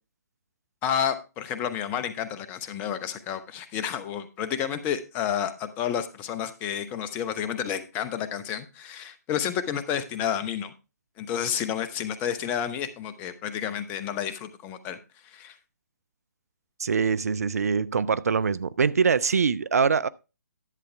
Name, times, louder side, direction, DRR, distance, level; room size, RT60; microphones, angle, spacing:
voice 1, 0.8-10.7 11.2-15.0 15.2-15.6, left 9 dB, 20° left, 0.8 m, -30 dB
voice 2, 16.8-20.1, right 5 dB, 60° right, 0.5 m, -23 dB
11.0 x 7.9 x 3.3 m
figure-of-eight pair, 135°, 9 cm